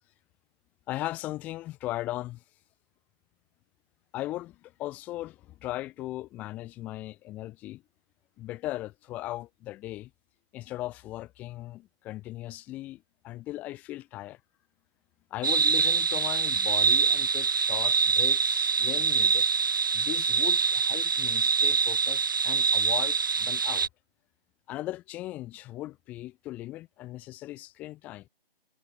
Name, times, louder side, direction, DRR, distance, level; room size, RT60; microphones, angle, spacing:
voice 1, 0.9-2.4 4.1-7.8 8.4-10.1 10.5-14.4 15.3-19.5 19.9-23.9 24.7-28.3, left 16 dB, 5° left, 7.1 m, -38 dB
sound 1, 15.4-23.9, right 5 dB, 20° right, 3.2 m, -25 dB
figure-of-eight pair, 180°, 31 cm